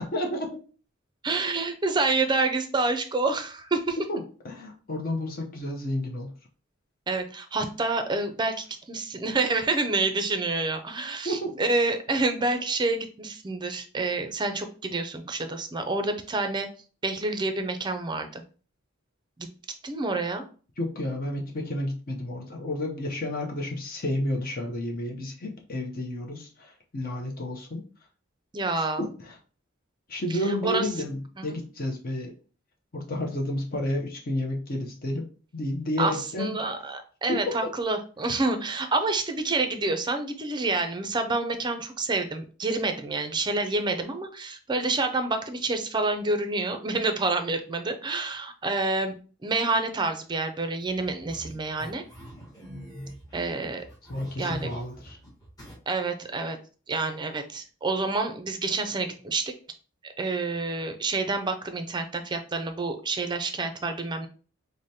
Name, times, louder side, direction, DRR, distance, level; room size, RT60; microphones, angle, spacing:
voice 1, 0.1-0.5 4.1-6.3 11.2-11.6 20.8-27.8 29.0-29.4 30.1-32.3 32.9-35.2 35.5-36.6 37.3-37.7 54.1-55.2, left 1 dB, 45° left, 1 dB, 0.7 m, -31 dB
voice 2, 1.2-4.0 7.1-16.7 17.0-18.4 19.4-19.5 19.8-20.4 28.5-29.0 30.3-30.9 31.4-31.6 36.0-49.1 49.4-52.0 53.3-53.8 54.4-54.7 55.9-56.6 56.9-59.4 60.2-64.3, right 3 dB, 25° right, 7 dB, 0.5 m, -28 dB
sound 1, 50.8-55.8, equal, 20° left, 1.1 m, -45 dB
4.8 x 2.1 x 2.7 m, 0.38 s
head